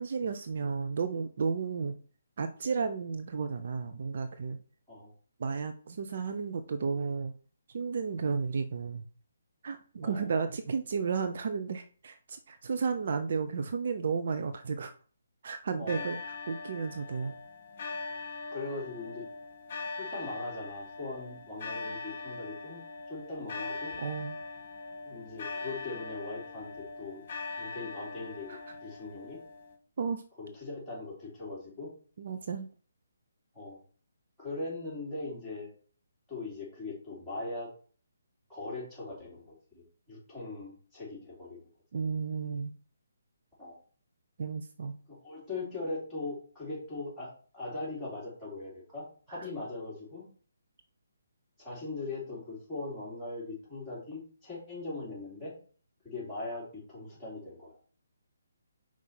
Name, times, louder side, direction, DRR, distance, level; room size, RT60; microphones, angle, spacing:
voice 1, 0.0-1.9 2.4-4.6 5.4-7.3 7.7-9.1 9.6-14.9 15.4-17.4 24.0-24.4 28.5-28.6 30.0-30.2 32.2-32.7 41.9-42.7 44.4-45.0 49.3-49.4, right 5 dB, 50° right, 8 dB, 0.5 m, -33 dB
voice 2, 15.8-16.1 18.5-19.2 20.0-22.8 23.1-24.0 25.0-27.2 27.6-29.4 30.4-31.9 33.5-33.8 34.4-35.7 36.3-37.7 38.5-41.7 43.6-43.7 45.1-50.2 51.6-55.5 56.0-57.7, left 3 dB, ahead, -9 dB, 3.5 m, -40 dB
sound 1, 15.9-29.7, left 3 dB, 40° left, 1.6 m, -41 dB
5.3 x 4.7 x 4.4 m, 0.42 s
figure-of-eight pair, 140°, 0 cm